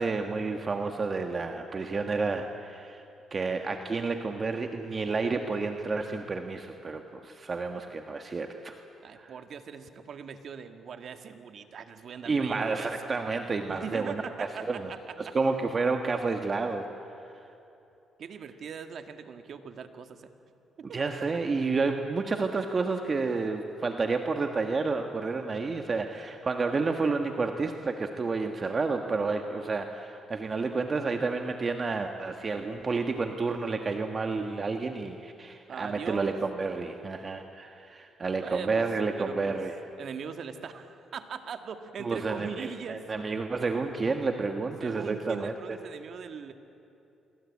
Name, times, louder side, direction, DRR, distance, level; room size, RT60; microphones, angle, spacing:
voice 1, 0.0-3.0 3.3-8.8 9.2-9.3 12.2-14.9 15.2-16.9 17.3-17.4 20.8-39.7 42.0-45.8, right 4 dB, 35° right, 5 dB, 1.5 m, -30 dB
voice 2, 9.0-12.9 13.7-15.3 18.2-20.3 20.8-21.1 35.7-36.4 38.4-38.9 39.2-39.6 40.0-43.3 44.8-46.5, right 6 dB, 60° right, 7 dB, 1.9 m, -40 dB
27.0 x 23.0 x 8.6 m, 2.8 s
cardioid pair, 90°, 0 cm